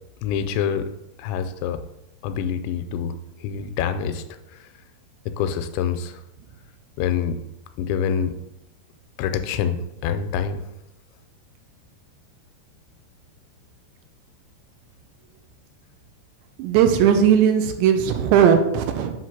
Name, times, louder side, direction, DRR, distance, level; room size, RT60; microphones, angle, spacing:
voice 1, 0.2-0.9 1.2-1.8 2.2-4.2 4.5-4.7 5.3-6.2 7.0-7.4 7.8-8.3 9.2-10.6, left 8 dB, 85° left, 9 dB, 2.7 m, -26 dB
voice 2, 16.6-19.1, right 8 dB, 85° right, 7 dB, 2.7 m, -18 dB
7.7 x 3.0 x 5.8 m, 0.87 s
omnidirectional pair, 5.1 m